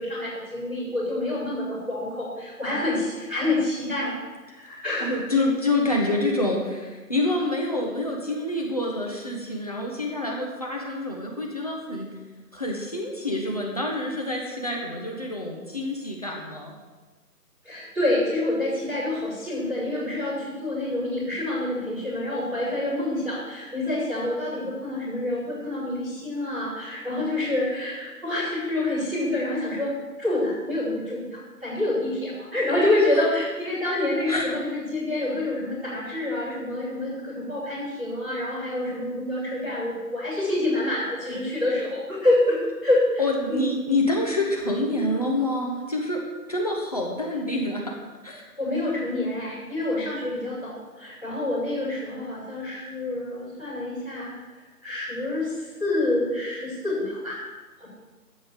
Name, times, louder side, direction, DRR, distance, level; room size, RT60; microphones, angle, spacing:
voice 1, 0.0-5.2 17.6-29.9 30.2-43.2 43.5-43.7 48.6-54.3 54.8-57.4 57.8-57.9, left 1 dB, ahead, -17 dB, 4.7 m, -27 dB
voice 2, 5.0-12.1 12.5-16.7 34.3-34.5 43.2-46.2 46.5-48.0 48.2-48.4, left 2 dB, 25° left, -2 dB, 1.1 m, -27 dB
15.0 x 5.6 x 8.0 m, 1.3 s
figure-of-eight pair, 155°, 48 cm